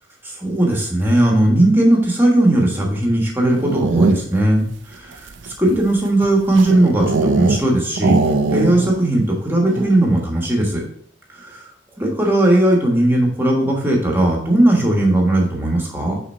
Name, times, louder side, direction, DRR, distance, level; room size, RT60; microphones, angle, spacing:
voice 1, 0.2-5.3 5.6-8.2 8.5-10.8 11.3-11.7 12.0-16.2, right 1 dB, 10° right, 0 dB, 1.2 m, -17 dB
sound 1, 3.4-4.5 5.1-7.7 8.0-9.1 9.3-9.4 9.7-10.1, right 3 dB, 75° right, 0.5 m, -21 dB
5.8 x 4.0 x 4.2 m, 0.64 s
head